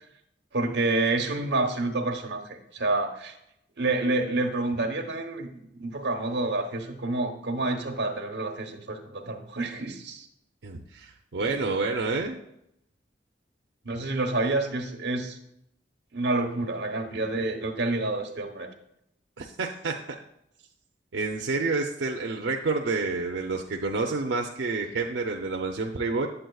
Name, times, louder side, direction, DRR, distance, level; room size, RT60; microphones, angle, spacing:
voice 1, 0.5-3.3 3.8-10.3 11.4-11.6 13.8-15.4 16.1-18.7, right 2 dB, 70° right, 4 dB, 1.0 m, -28 dB
voice 2, 10.6-12.4 19.4-19.9 21.1-26.3, right 3 dB, 90° right, 2 dB, 0.5 m, -29 dB
8.7 x 7.7 x 2.3 m, 0.78 s
head